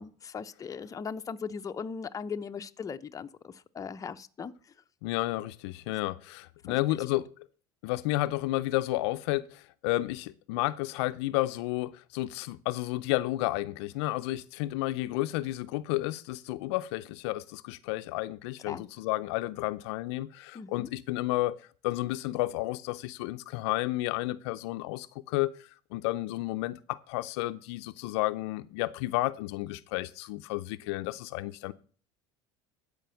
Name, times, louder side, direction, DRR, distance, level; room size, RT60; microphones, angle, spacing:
voice 1, 0.0-4.5 6.7-7.0 18.7-18.9 20.5-20.9, left 6 dB, 25° left, 0.7 m, -39 dB
voice 2, 5.0-7.3 7.8-21.5 21.8-25.5 25.9-31.7, left 18 dB, 80° left, 0.5 m, -31 dB
11.5 x 5.2 x 6.9 m
supercardioid pair, 100°, 14 cm